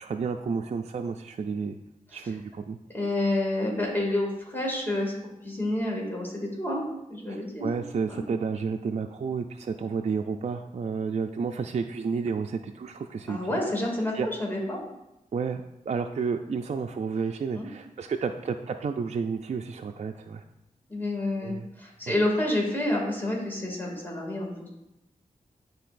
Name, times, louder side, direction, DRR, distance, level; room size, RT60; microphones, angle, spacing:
voice 1, 0.0-1.8 2.1-2.8 7.3-13.4 14.1-14.3 15.3-20.4 21.4-21.7 22.1-22.2, right 5 dB, 50° right, 5 dB, 0.4 m, -31 dB
voice 2, 2.9-6.8 7.1-7.7 8.1-8.2 13.3-14.8 17.5-17.7 20.9-24.7, left 1 dB, 15° left, -3 dB, 2.2 m, -29 dB
11.0 x 3.9 x 2.5 m, 0.89 s
cardioid pair, 45°, 15 cm